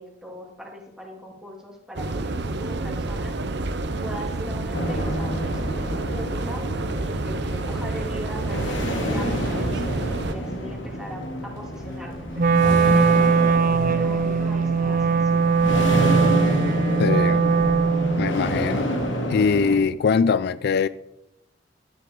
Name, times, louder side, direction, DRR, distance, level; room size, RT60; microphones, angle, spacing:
voice 1, 0.0-3.3 4.0-6.6 7.0-13.3 13.9-15.5, equal, 5° right, 2.7 m, -40 dB
sound 1, 2.0-10.3, right 2 dB, 65° right, 0.9 m, -29 dB
sound 2, 4.7-19.8, equal, 80° left, 2.1 m, -28 dB
Wind instrument woodwind instrument, 12.4-18.4, right 5 dB, 45° right, 0.5 m, -20 dB
voice 2, 17.0-17.5 18.2-18.9 19.3-20.9, left 5 dB, 60° left, 0.3 m, -22 dB
13.0 x 10.5 x 3.8 m
head